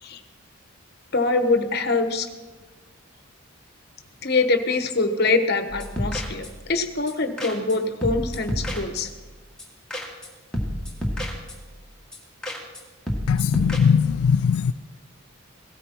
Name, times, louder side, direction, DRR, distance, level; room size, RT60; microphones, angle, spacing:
voice 1, 1.1-2.3 4.2-9.1, left 3 dB, 50° left, 8 dB, 1.1 m, -24 dB
sound 1, 5.7-6.7 7.1-7.2 7.4-7.8 8.0-9.2 9.6-9.7 9.9-10.3 10.5-11.8 12.1-12.2 12.4-12.8 13.1-13.8, equal, 5° left, 1.8 m, -30 dB
voice 2, 13.3-14.7, left 6 dB, 90° left, 12 dB, 0.3 m, -20 dB
17.0 x 13.5 x 4.5 m, 1.3 s
head